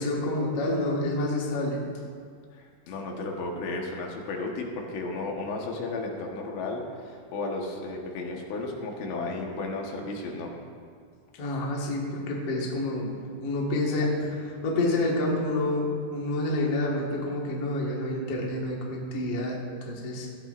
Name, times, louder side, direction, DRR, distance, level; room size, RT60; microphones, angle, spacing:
voice 1, 0.0-1.8 11.4-13.1 13.4-19.6 19.9-20.3, left 2 dB, 50° left, -2 dB, 1.9 m, -28 dB
voice 2, 2.5-10.5, left 3 dB, 85° left, 0 dB, 3.6 m, -34 dB
16.0 x 14.5 x 2.6 m, 2.1 s
omnidirectional pair, 5.0 m